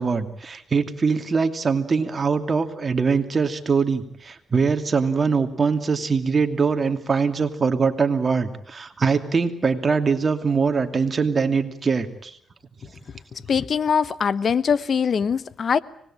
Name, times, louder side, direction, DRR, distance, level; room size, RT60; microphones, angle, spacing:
voice 1, 0.0-12.4, right 5 dB, 35° right, 2.7 m, -22 dB
voice 2, 13.3-15.8, left 6 dB, 55° left, 1.0 m, -22 dB
25.0 x 20.5 x 8.9 m
cardioid pair, 80°, 0 cm